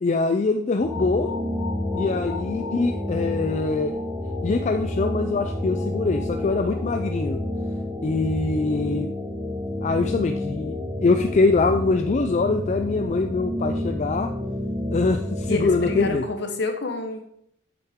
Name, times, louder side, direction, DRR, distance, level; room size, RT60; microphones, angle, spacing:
voice 1, 0.0-1.3 1.9-4.0 4.4-7.4 8.0-9.1 9.8-14.3 14.9-16.3, left 3 dB, 35° left, 6 dB, 0.4 m, -23 dB
sound 1, 0.8-16.1, left 1 dB, ahead, 1.9 m, -29 dB
voice 2, 15.5-17.2, left 2 dB, 55° left, 5 dB, 1.1 m, -28 dB
7.9 x 7.4 x 3.6 m, 0.71 s
head